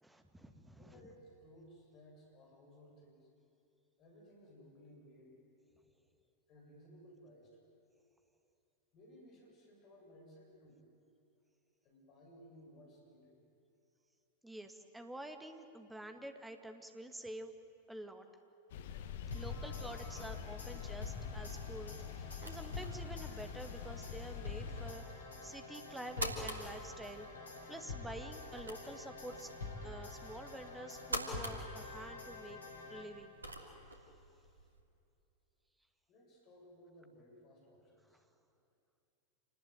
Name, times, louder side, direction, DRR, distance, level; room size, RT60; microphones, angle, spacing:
voice 1, 0.0-1.0 14.4-17.5 17.9-18.3 19.3-27.3 27.7-29.5 29.8-32.6 32.9-33.3, right 1 dB, 5° right, 6 dB, 2.0 m, -48 dB
voice 2, 0.8-3.3 4.0-5.4 6.5-7.6 8.9-10.8 11.8-13.4 36.1-38.2, equal, 35° left, 0 dB, 7.6 m, -59 dB
sound 1, 18.7-24.9, left 8 dB, 55° left, 1.2 m, -45 dB
sound 2, 19.3-33.4, left 3 dB, 70° left, 4.0 m, -47 dB
sound 3, 21.2-34.8, right 1 dB, 75° right, 2.9 m, -48 dB
27.5 x 19.5 x 9.4 m, 2.6 s
figure-of-eight pair, 90°, 0 cm